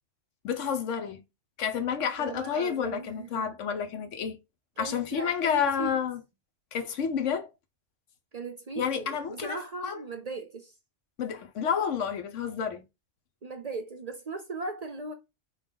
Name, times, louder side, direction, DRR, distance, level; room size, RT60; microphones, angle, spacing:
voice 1, 0.4-1.2 1.6-4.4 4.8-6.2 6.7-7.5 8.8-9.6 9.8-10.0 11.2-12.8, left 7 dB, 80° left, 1.2 m, -30 dB
voice 2, 2.2-3.5 4.8-6.0 8.3-10.8 13.4-15.1, right 3 dB, 45° right, 0.6 m, -38 dB
5.9 x 2.4 x 3.8 m
omnidirectional pair, 1.2 m